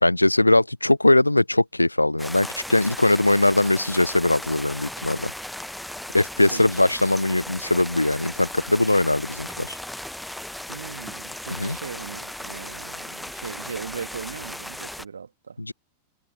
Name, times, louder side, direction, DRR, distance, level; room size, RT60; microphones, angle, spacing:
voice 1, 0.0-5.3 6.1-9.8 11.6-11.8 15.6-15.7, left 2 dB, 85° left, 0.5 m, -20 dB
sound 1, 2.2-15.0, left 1 dB, ahead, 0.9 m, -36 dB
voice 2, 6.5-6.8 10.7-15.6, right 6 dB, 70° right, 1.8 m, -38 dB
figure-of-eight pair, 90°, 0 cm